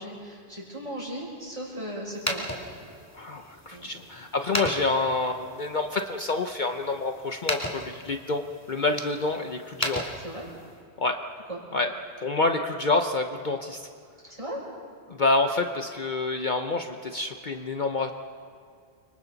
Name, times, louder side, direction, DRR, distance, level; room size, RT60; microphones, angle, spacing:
voice 1, 0.0-2.5 3.7-3.9 10.2-10.4 11.5-11.6 14.3-14.6, equal, 35° right, -4 dB, 6.3 m, -37 dB
sound 1, 2.1-10.8, left 1 dB, 15° left, 2.4 m, -36 dB
voice 2, 3.1-10.1 11.0-11.2 11.7-11.9 12.2-13.9 15.1-18.1, left 3 dB, 50° left, 5 dB, 0.9 m, -27 dB
30.0 x 25.0 x 4.1 m, 2.3 s
omnidirectional pair, 1.1 m